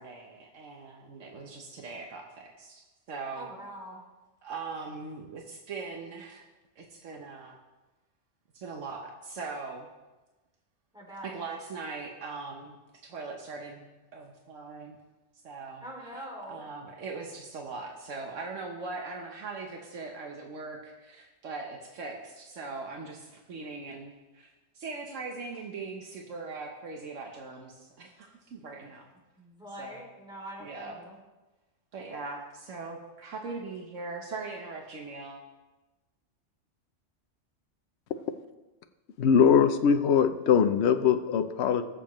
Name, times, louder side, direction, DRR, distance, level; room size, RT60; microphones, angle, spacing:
voice 1, 0.0-2.8 3.1-3.5 4.4-6.5 6.8-7.6 8.5-9.9 11.2-13.8 14.1-15.0 15.4-15.8 16.1-24.5 24.7-29.1 29.8-30.0 30.6-31.0 31.9-35.4, right 4 dB, 85° right, 1 dB, 1.4 m, -40 dB
voice 2, 3.3-4.0 10.9-11.3 15.8-16.6 29.4-31.2, right 1 dB, 5° right, -3 dB, 2.7 m, -43 dB
voice 3, 39.2-41.8, left 7 dB, 65° left, 9 dB, 0.9 m, -22 dB
20.5 x 7.0 x 3.1 m, 1.1 s
omnidirectional pair, 1.3 m